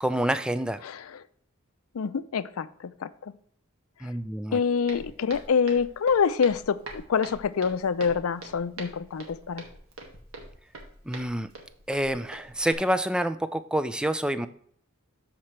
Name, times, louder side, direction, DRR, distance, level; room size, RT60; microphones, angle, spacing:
voice 1, 0.0-0.8 4.0-4.6 11.1-11.5 11.9-14.5, right 1 dB, 5° right, 12 dB, 0.3 m, -27 dB
voice 2, 0.8-1.2 1.9-3.3 4.5-9.7, left 6 dB, 90° left, 15 dB, 0.5 m, -26 dB
Walk footsteps, 4.9-12.7, right 2 dB, 85° right, 1.6 m, -44 dB
13.0 x 4.4 x 3.2 m, 0.63 s
head